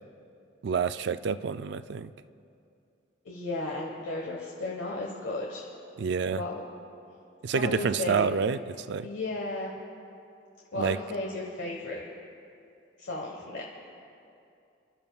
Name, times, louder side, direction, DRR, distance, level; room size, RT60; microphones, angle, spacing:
voice 1, 0.6-2.1 6.0-6.4 7.4-9.1 10.7-11.0, right 6 dB, 60° right, 13 dB, 0.4 m, -28 dB
voice 2, 3.2-5.6 6.3-6.6 7.5-8.3 9.0-9.7 10.7-12.1 13.0-13.6, left 2 dB, 75° left, -2 dB, 1.2 m, -34 dB
28.0 x 12.5 x 2.3 m, 2.5 s
head